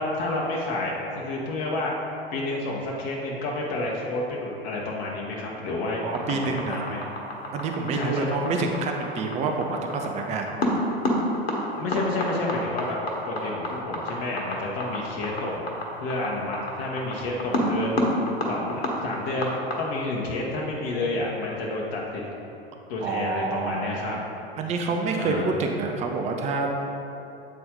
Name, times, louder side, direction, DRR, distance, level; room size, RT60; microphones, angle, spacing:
voice 1, 0.0-1.9 2.3-6.0 6.3-7.0 7.9-8.3 11.7-13.0 13.3-15.7 16.0-18.0 18.5-22.2 22.9-24.2 25.1-25.5, left 2 dB, 45° left, -3 dB, 1.0 m, -30 dB
voice 2, 6.0-6.9 7.5-10.5 23.0-24.2 24.6-26.7, right 3 dB, 20° right, 3 dB, 0.5 m, -27 dB
sound 1, 6.1-19.8, left 1 dB, 75° left, 1.3 m, -29 dB
8.4 x 4.2 x 3.7 m, 2.9 s
figure-of-eight pair, 85°, 31 cm